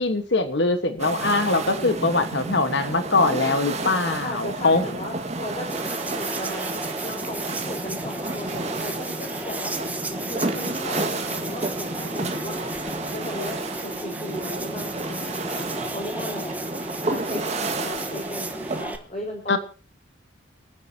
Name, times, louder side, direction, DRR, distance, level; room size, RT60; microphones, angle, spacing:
voice 1, 0.0-4.8 19.5-19.6, left 3 dB, 60° left, 9 dB, 1.4 m, -22 dB
sound 1, 1.0-18.8, right 2 dB, 35° right, 1.8 m, -31 dB
voice 2, 1.7-2.1 3.8-6.7 7.0-16.6 17.1-17.4 17.8-19.6, left 1 dB, 35° left, 0 dB, 4.5 m, -36 dB
sound 2, 5.7-19.0, right 1 dB, 10° right, 1.2 m, -34 dB
29.5 x 9.8 x 2.9 m, 0.37 s
head